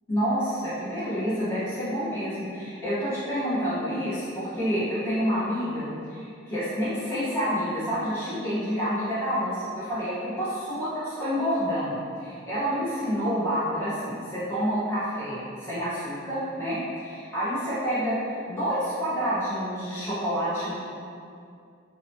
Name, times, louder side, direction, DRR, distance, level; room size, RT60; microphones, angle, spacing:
voice 1, 0.1-20.7, equal, 10° left, -13 dB, 0.9 m, -28 dB
2.8 x 2.1 x 2.7 m, 2.4 s
head